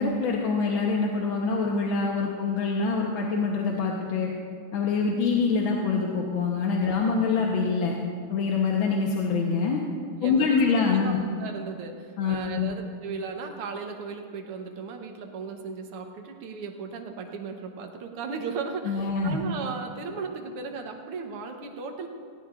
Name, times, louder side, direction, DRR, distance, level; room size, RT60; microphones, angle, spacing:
voice 1, 0.0-4.3 4.7-8.0 8.3-9.8 10.2-11.2 12.2-12.7 18.8-19.4, left 4 dB, 70° left, -1 dB, 1.7 m, -25 dB
voice 2, 10.2-11.1 11.4-22.1, right 5 dB, 90° right, 3 dB, 2.0 m, -36 dB
18.5 x 16.0 x 2.5 m, 2.3 s
omnidirectional pair, 2.4 m